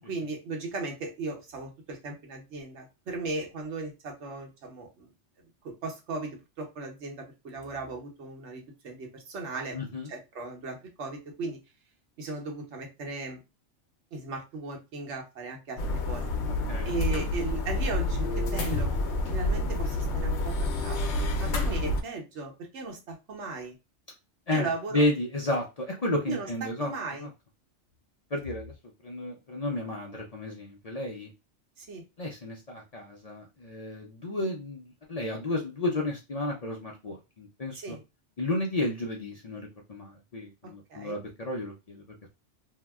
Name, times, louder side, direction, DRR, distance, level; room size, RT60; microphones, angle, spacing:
voice 1, 0.0-5.1 5.6-9.8 10.1-11.6 12.2-13.4 14.1-16.2 16.9-18.9 19.3-21.0 21.4-23.8 24.5-25.0 26.3-27.3 31.8-32.0 37.7-38.0 40.9-41.2, right 3 dB, 75° right, 2 dB, 1.1 m, -37 dB
voice 2, 9.7-10.1 16.5-17.0 24.5-26.9 27.2-27.3 28.3-28.7 29.0-31.3 32.2-38.0 38.4-42.0, left 1 dB, 45° left, -1 dB, 0.5 m, -32 dB
sound 1, 15.8-22.0, left 2 dB, 70° left, 0.9 m, -28 dB
2.7 x 2.0 x 3.4 m, 0.26 s
omnidirectional pair, 1.2 m